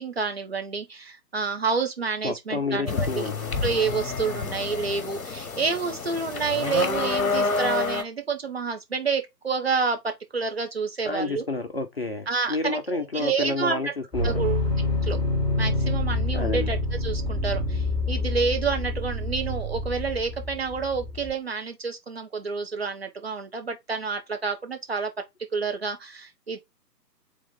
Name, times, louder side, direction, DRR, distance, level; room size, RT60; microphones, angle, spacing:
voice 1, 0.0-3.3 3.6-10.0 10.3-11.4 12.3-13.9 14.2-15.2 15.6-25.1 25.5-26.6, right 5 dB, 40° right, 0.8 m, -29 dB
voice 2, 2.2-3.4 11.0-14.4 16.3-16.7, left 3 dB, 40° left, 0.6 m, -30 dB
sound 1, 2.9-8.0, left 4 dB, 60° left, 1.0 m, -28 dB
sound 2, 14.1-21.3, left 2 dB, 10° right, 2.2 m, -27 dB
3.6 x 3.1 x 3.6 m
figure-of-eight pair, 140°, 49 cm